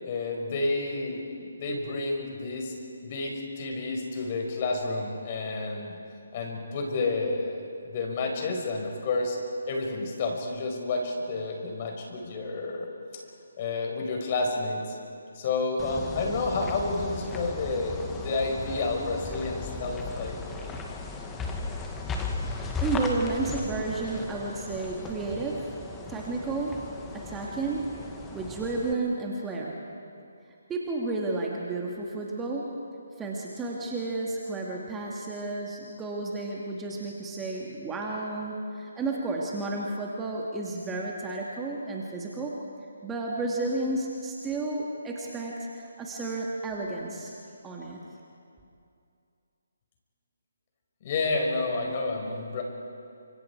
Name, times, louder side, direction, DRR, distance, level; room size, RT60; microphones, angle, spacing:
voice 1, 0.0-2.7 3.0-6.0 6.3-9.4 9.7-12.9 13.6-14.9 15.3-20.4 51.0-52.6, left 3 dB, 35° left, 1 dB, 5.2 m, -30 dB
sound 1, 15.8-28.9, left 3 dB, 10° left, 1.8 m, -36 dB
voice 2, 22.8-25.8 26.1-28.0 28.3-29.8 30.7-32.8 33.2-42.6 43.0-47.3 47.6-48.0, right 2 dB, 10° right, -3 dB, 2.4 m, -32 dB
30.0 x 26.0 x 4.8 m, 2.5 s
figure-of-eight pair, 150°, 0 cm